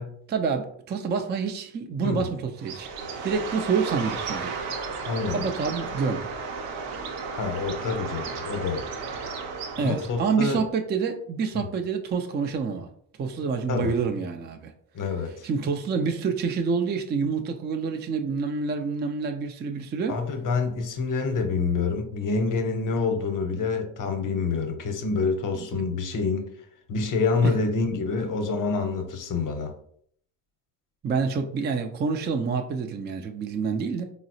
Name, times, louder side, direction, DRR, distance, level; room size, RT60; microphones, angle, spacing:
voice 1, 0.3-2.9 3.2-4.5 5.3-6.3 9.8-12.9 13.2-14.7 15.4-20.2 25.5-25.8 27.4-27.6 31.0-34.0, right 5 dB, 25° right, 5 dB, 0.4 m, -27 dB
Bird, 2.6-10.3, right 5 dB, 80° right, 0.7 m, -34 dB
voice 2, 5.0-5.4 7.4-8.8 9.8-10.6 11.5-11.7 13.7-13.9 14.9-15.5 20.1-26.4 26.9-29.7, left 4 dB, 40° left, 6 dB, 0.7 m, -27 dB
3.9 x 2.0 x 2.6 m, 0.64 s
supercardioid pair, 65°, 49 cm